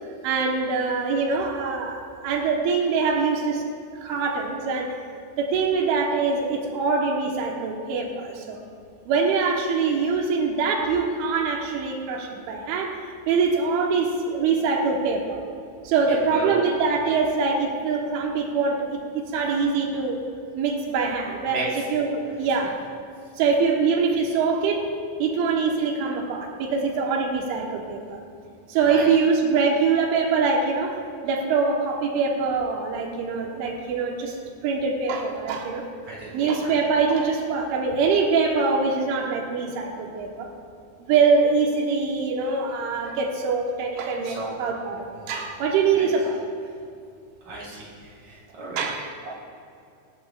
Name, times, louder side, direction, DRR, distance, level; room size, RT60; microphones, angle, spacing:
voice 1, 0.2-3.6 4.0-5.0 5.4-8.6 9.1-13.0 13.3-15.4 15.9-20.2 20.6-22.8 23.4-24.9 25.2-28.2 28.7-34.4 34.6-35.8 36.3-40.5 41.1-45.0 45.3-46.4 48.8-49.1, right 4 dB, 85° right, 1 dB, 3.6 m, -24 dB
voice 2, 16.3-16.6 21.5-21.6 28.8-29.1 36.1-36.7 44.2-44.5 45.2-45.3 45.9-46.1 47.4-48.8 49.2-49.3, right 2 dB, 35° right, -6 dB, 4.3 m, -35 dB
26.0 x 11.0 x 2.4 m, 2.5 s
omnidirectional pair, 5.3 m